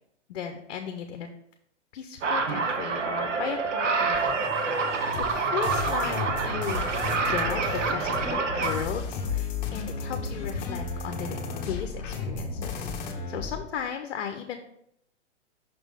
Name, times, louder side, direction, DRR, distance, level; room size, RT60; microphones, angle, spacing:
voice 1, 0.3-1.3 1.9-5.0 5.3-11.4 11.7-12.9 13.3-14.6, left 8 dB, 60° left, 6 dB, 0.7 m, -36 dB
sound 1, 2.2-8.8, right 4 dB, 85° right, 0.9 m, -27 dB
sound 2, 4.1-13.6, left 3 dB, 20° left, 1.6 m, -36 dB
sound 3, 5.1-13.1, left 5 dB, 40° left, 0.9 m, -36 dB
5.9 x 3.5 x 5.0 m, 0.75 s
hypercardioid pair, 145°, 36 cm